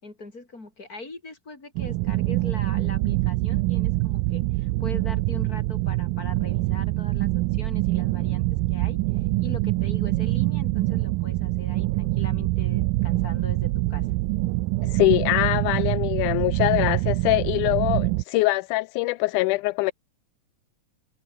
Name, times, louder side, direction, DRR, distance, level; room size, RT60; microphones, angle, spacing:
voice 1, 0.0-9.0 9.4-14.1, left 3 dB, 25° left, 5.6 m, -41 dB
sound 1, 1.8-18.2, right 20 dB, 85° right, 2.3 m, -25 dB
voice 2, 14.9-19.9, left 21 dB, 85° left, 1.8 m, -23 dB
omnidirectional pair, 4.0 m